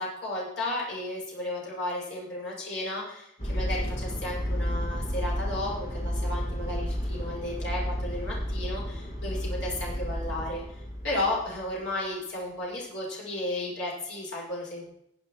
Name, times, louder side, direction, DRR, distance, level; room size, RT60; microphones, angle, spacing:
voice 1, 0.0-14.9, left 1 dB, 65° left, -4 dB, 6.4 m, -34 dB
sound 1, 3.4-11.7, equal, 40° left, 2.6 m, -32 dB
16.5 x 8.2 x 4.8 m, 0.75 s
head